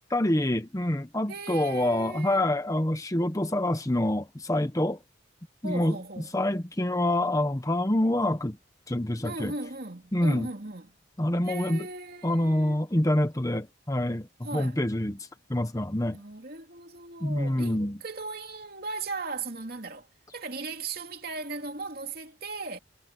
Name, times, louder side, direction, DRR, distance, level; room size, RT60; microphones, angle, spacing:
voice 1, 0.1-5.0 5.6-6.0 6.3-8.6 8.9-9.5 10.1-10.5 11.2-11.9 12.2-16.2 17.2-18.0, left 1 dB, 15° left, 0.9 m, -26 dB
voice 2, 1.3-2.4 5.6-6.6 9.2-10.9 11.4-12.8 14.4-14.8 16.1-20.1 20.3-22.8, right 3 dB, 50° right, 3.0 m, -38 dB
head